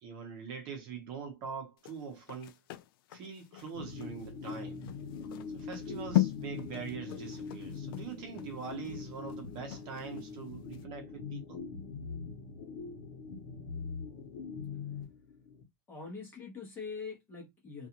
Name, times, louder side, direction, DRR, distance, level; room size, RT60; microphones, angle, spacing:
voice 1, 0.0-2.6 3.1-4.8 5.5-11.6, right 6 dB, 40° right, 0.8 m, -43 dB
sound 1, 1.8-10.3 10.7-10.8, left 14 dB, 85° left, 0.4 m, -37 dB
sound 2, 3.7-15.6, left 5 dB, 60° left, 0.9 m, -42 dB
voice 2, 15.9-17.9, left 5 dB, 15° left, 1.0 m, -43 dB
2.4 x 2.4 x 2.8 m
supercardioid pair, 170°, 12 cm